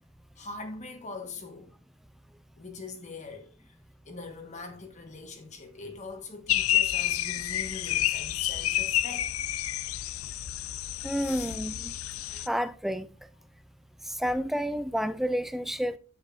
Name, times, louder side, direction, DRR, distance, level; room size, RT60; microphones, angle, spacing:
voice 1, 0.4-1.7 2.6-3.8 4.0-9.3 11.2-11.6, left 3 dB, 35° left, 1.2 m, -42 dB
sound 1, 6.5-12.5, left 13 dB, 75° left, 0.4 m, -29 dB
voice 2, 11.0-11.9 12.5-13.1 14.1-16.0, equal, ahead, 0.3 m, -30 dB
10.0 x 7.7 x 2.5 m
head